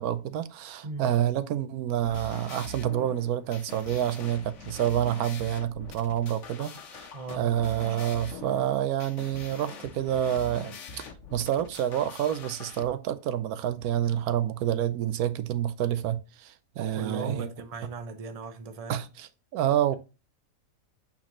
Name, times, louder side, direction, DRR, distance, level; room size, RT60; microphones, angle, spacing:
voice 1, 0.0-17.5 18.9-20.0, right 11 dB, 90° right, 1.1 m, -28 dB
sound 1, 1.9-12.9, left 3 dB, 60° left, 1.2 m, -43 dB
voice 2, 7.1-7.6 8.0-8.3 16.8-19.0, right 3 dB, 30° right, 0.7 m, -38 dB
8.5 x 4.3 x 3.0 m
omnidirectional pair, 1.5 m